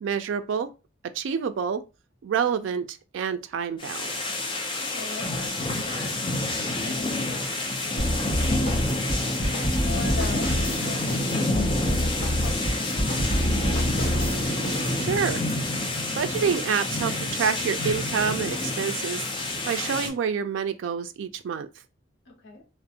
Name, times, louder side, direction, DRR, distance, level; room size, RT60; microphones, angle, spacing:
voice 1, 0.0-0.7 1.1-1.8 2.2-4.1 15.0-15.4 16.2-19.2 19.7-21.7, right 7 dB, 75° right, 0.3 m, -27 dB
sound 1, 3.8-20.1, left 2 dB, 25° left, 0.4 m, -28 dB
voice 2, 4.7-8.1 8.3-13.9 22.3-22.7, left 2 dB, 70° left, 0.8 m, -40 dB
sound 2, 8.0-15.1, equal, 45° left, 1.0 m, -28 dB
2.4 x 2.0 x 2.7 m
head